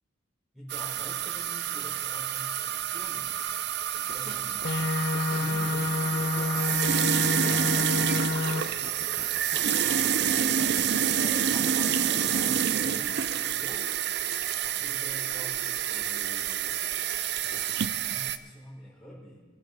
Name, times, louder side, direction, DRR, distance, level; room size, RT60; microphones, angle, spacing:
voice 1, 0.5-3.3 3.9-4.7 5.1-8.2 9.8-10.7 11.1-14.0 14.6-17.1 18.0-19.4, equal, ahead, -6 dB, 4.6 m, -46 dB
sound 1, 0.7-18.4, right 9 dB, 55° right, 0.5 m, -28 dB
sound 2, 3.9-4.3 4.6-12.5, left 2 dB, 45° left, 1.1 m, -44 dB
sound 3, 4.6-8.6, left 3 dB, 60° left, 0.6 m, -28 dB
21.5 x 9.0 x 4.1 m, 1.5 s
head